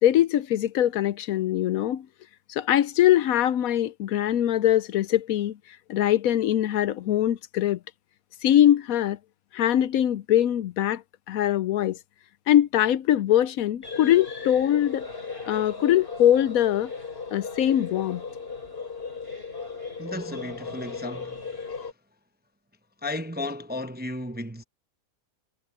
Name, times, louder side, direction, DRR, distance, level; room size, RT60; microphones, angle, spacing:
voice 1, 0.0-2.1 2.5-5.6 5.9-7.8 8.4-9.2 9.5-11.0 11.3-12.0 12.5-15.1 15.5-16.9 17.3-18.2, left 11 dB, 75° left, 1.0 m, -22 dB
sound 1, 13.8-21.9, left 4 dB, 40° left, 4.3 m, -36 dB
voice 2, 20.0-21.9 23.0-24.6, left 1 dB, 10° right, 0.6 m, -34 dB
omnidirectional pair, 1.6 m